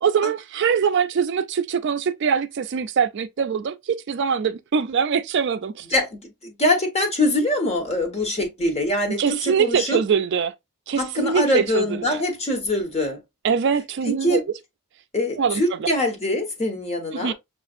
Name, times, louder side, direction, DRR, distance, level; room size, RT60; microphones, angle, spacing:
voice 1, 0.0-5.9 9.1-10.5 10.9-11.9 13.4-14.4 15.4-15.9 17.1-17.3, right 6 dB, 50° right, 0.4 m, -23 dB
voice 2, 5.9-10.0 11.0-13.2 14.1-14.4 15.1-17.3, left 1 dB, 30° left, 1.2 m, -23 dB
6.7 x 2.5 x 2.5 m
head